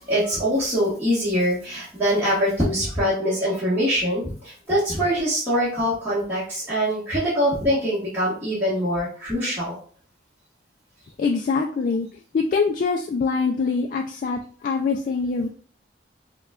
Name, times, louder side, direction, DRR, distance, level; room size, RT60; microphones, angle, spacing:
voice 1, 0.1-9.7, equal, 10° right, -12 dB, 1.3 m, -23 dB
voice 2, 11.2-12.1 12.3-15.5, left 4 dB, 50° left, 3 dB, 0.3 m, -24 dB
5.4 x 2.3 x 2.3 m, 0.43 s
head